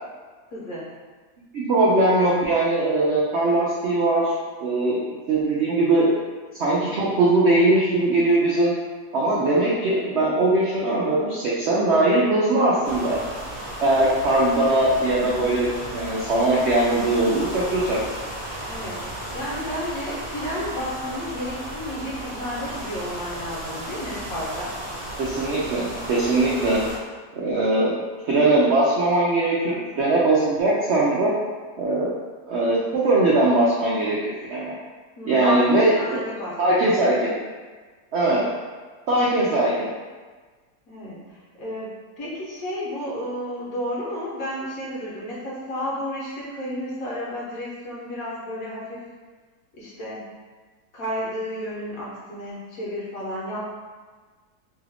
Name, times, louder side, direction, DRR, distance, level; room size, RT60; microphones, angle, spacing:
voice 1, 0.5-0.9 18.7-24.7 35.2-36.9 38.2-38.4 40.9-41.9 42.2-49.0 49.8-50.2 50.9-53.6, equal, 60° left, -6 dB, 1.2 m, -32 dB
voice 2, 1.5-4.3 4.6-5.0 5.3-6.1 6.6-8.7 9.1-13.2 13.8-18.0 25.2-26.8 27.3-27.9 28.3-31.4 31.8-32.1 32.5-34.7 35.2-35.9 36.6-37.3 38.1-38.4 39.1-39.9, right 2 dB, 75° right, -6 dB, 0.6 m, -20 dB
sound 1, 12.8-27.0, right 1 dB, 25° right, 0.7 m, -34 dB
3.1 x 2.4 x 3.3 m, 1.4 s
omnidirectional pair, 1.8 m